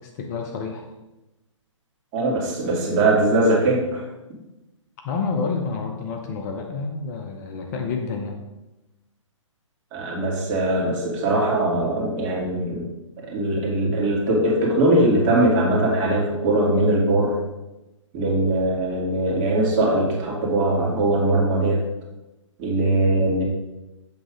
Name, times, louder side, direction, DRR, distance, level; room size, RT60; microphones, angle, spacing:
voice 1, 0.2-0.9 5.0-8.4, left 4 dB, 35° left, 3 dB, 0.8 m, -29 dB
voice 2, 2.1-4.0 9.9-12.8 13.3-17.3 18.1-21.8 22.6-23.4, right 1 dB, 30° right, -3 dB, 2.3 m, -21 dB
7.9 x 3.8 x 5.0 m, 1.0 s
figure-of-eight pair, 135°, 17 cm